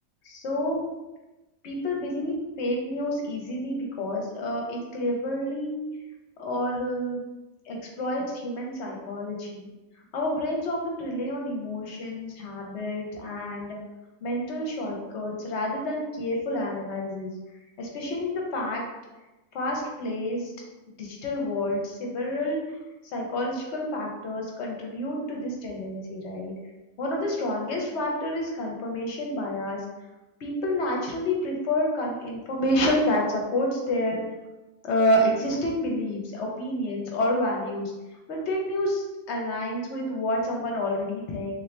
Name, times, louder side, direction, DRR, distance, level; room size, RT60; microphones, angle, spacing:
voice 1, 0.2-0.8 1.6-5.8 6.4-7.2 7.6-9.7 10.1-13.8 14.2-17.3 17.8-18.8 19.5-20.5 21.0-22.6 23.1-26.5 27.0-29.8 30.4-34.2 34.8-37.9 38.3-41.6, left 1 dB, 60° left, 0 dB, 0.9 m, -29 dB
2.8 x 2.6 x 3.1 m, 1.1 s
omnidirectional pair, 1.5 m